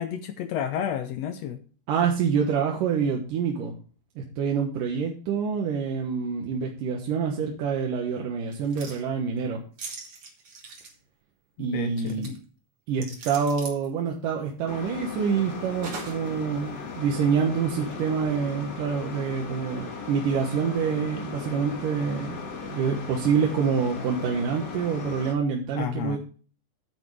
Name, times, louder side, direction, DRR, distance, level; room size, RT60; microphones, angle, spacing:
voice 1, 0.0-1.6 11.6-12.3 25.7-26.2, left 9 dB, 90° left, 8 dB, 1.4 m, -31 dB
voice 2, 1.9-3.8 4.2-9.6 11.6-12.3 12.9-26.2, right 6 dB, 70° right, 1 dB, 2.7 m, -26 dB
sound 1, 8.5-9.0 9.8-10.9 12.0-12.4 13.0-13.9 15.8-16.3 16.8-16.9, right 3 dB, 45° right, 2.5 m, -40 dB
sound 2, 14.7-25.3, left 5 dB, 50° left, 1.3 m, -37 dB
9.8 x 9.4 x 3.2 m, 0.39 s
omnidirectional pair, 4.1 m